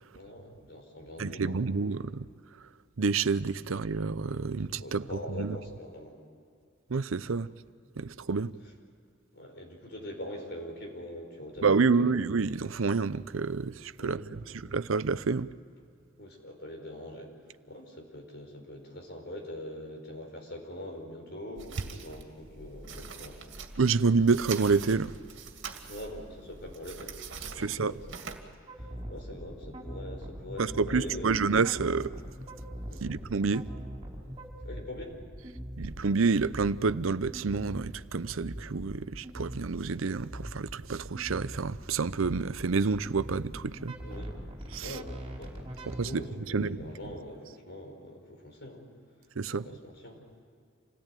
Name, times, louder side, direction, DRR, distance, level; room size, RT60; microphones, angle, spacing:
voice 1, 0.1-1.8 4.7-6.2 8.6-8.7 9.3-12.2 14.0-14.6 16.2-17.3 17.7-23.6 25.9-27.1 27.5-31.5 32.9-33.2 34.6-35.2 44.0-44.3 44.8-48.9 49.5-50.2, left 1 dB, 55° left, 4.9 m, -43 dB
voice 2, 1.2-2.3 3.0-5.0 5.4-5.6 6.9-7.5 8.0-8.5 11.6-14.2 14.7-15.5 23.8-25.1 27.6-27.9 30.6-32.1 33.0-33.6 35.8-43.9 44.7-45.0 46.0-46.2 46.5-46.8 49.4-49.6, right 4 dB, 80° right, 0.7 m, -28 dB
sound 1, 21.6-28.4, right 5 dB, 60° right, 2.3 m, -44 dB
sound 2, 28.7-46.1, equal, 25° right, 4.7 m, -42 dB
27.5 x 17.5 x 9.0 m
head